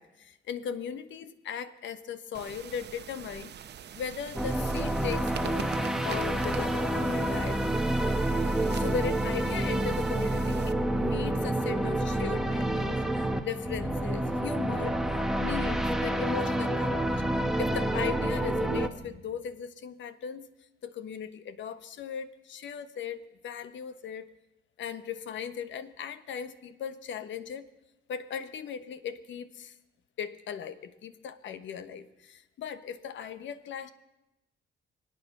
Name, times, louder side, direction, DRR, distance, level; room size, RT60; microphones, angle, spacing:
voice 1, 0.0-3.5 3.9-5.8 6.0-7.9 8.7-13.0 13.4-15.0 15.4-17.2 17.6-20.5 20.8-24.3 24.8-27.7 28.1-29.8 30.2-33.9, left 7 dB, 70° left, 13 dB, 1.1 m, -38 dB
sound 1, 2.3-10.7, right 9 dB, 60° right, 0.9 m, -44 dB
sound 2, 4.3-18.9, right 1 dB, ahead, 1.1 m, -28 dB
25.0 x 8.8 x 6.0 m, 0.95 s
cardioid pair, 90°, 20 cm